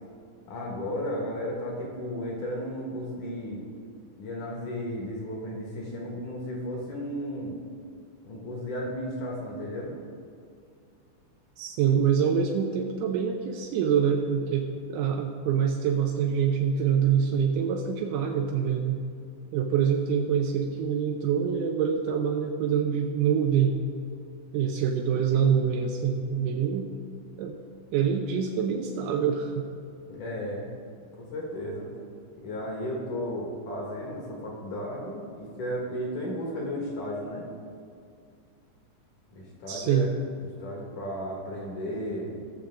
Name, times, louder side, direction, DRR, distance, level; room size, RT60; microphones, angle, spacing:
voice 1, 0.5-3.6 4.2-7.6 8.2-9.9 30.1-30.7 31.2-31.9 32.4-37.4 39.3-40.1 40.6-42.4, equal, 60° left, -2 dB, 2.3 m, -34 dB
voice 2, 11.6-19.0 19.5-23.8 24.5-26.9 27.4-27.6 27.9-29.7 39.7-40.1, right 7 dB, 80° right, 1 dB, 2.9 m, -25 dB
20.5 x 7.0 x 3.7 m, 2.3 s
omnidirectional pair, 5.7 m